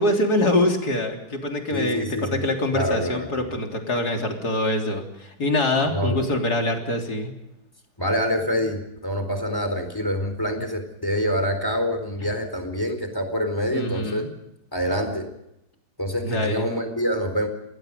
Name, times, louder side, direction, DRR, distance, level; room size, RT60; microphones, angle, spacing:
voice 1, 0.0-7.3 13.7-14.3 16.2-16.7, left 1 dB, 65° left, 2 dB, 4.0 m, -24 dB
voice 2, 1.7-2.4 2.7-3.3 5.9-6.2 8.0-14.2 14.7-15.3 16.0-17.5, equal, 10° left, 6 dB, 4.1 m, -26 dB
29.0 x 20.5 x 5.3 m, 0.85 s
omnidirectional pair, 1.8 m